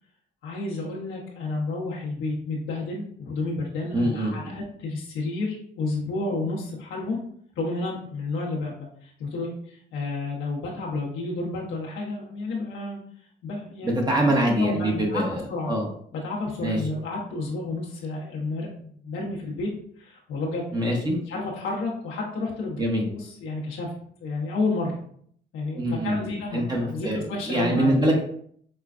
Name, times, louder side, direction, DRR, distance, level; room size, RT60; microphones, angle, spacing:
voice 1, 0.4-7.2 7.6-13.0 13.4-14.1 14.5-15.7 16.1-19.7 20.0-20.6 21.3-23.9 24.2-25.0 25.5-27.9, left 3 dB, 90° left, -3 dB, 1.1 m, -31 dB
voice 2, 3.9-4.5 13.8-15.4 15.7-15.9 16.6-16.8 20.7-21.2 22.8-23.0 25.7-26.2 26.5-27.2 27.5-28.2, right 1 dB, 20° right, -1 dB, 1.0 m, -24 dB
5.3 x 2.3 x 2.5 m, 0.62 s
cardioid pair, 90°, 20 cm